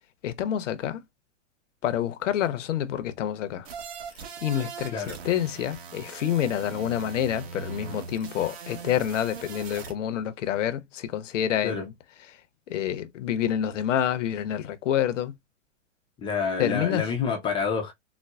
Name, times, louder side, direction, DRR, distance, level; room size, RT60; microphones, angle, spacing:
voice 1, 0.2-1.0 1.8-3.7 4.4-11.9 12.3-12.4 12.7-15.3 16.6-17.1, left 10 dB, 80° left, 0.7 m, -28 dB
sound 1, 3.6-9.9, right 6 dB, 55° right, 1.1 m, -40 dB
voice 2, 16.2-17.9, left 5 dB, 15° left, 0.4 m, -28 dB
4.2 x 2.1 x 2.2 m
hypercardioid pair, 130°, 37 cm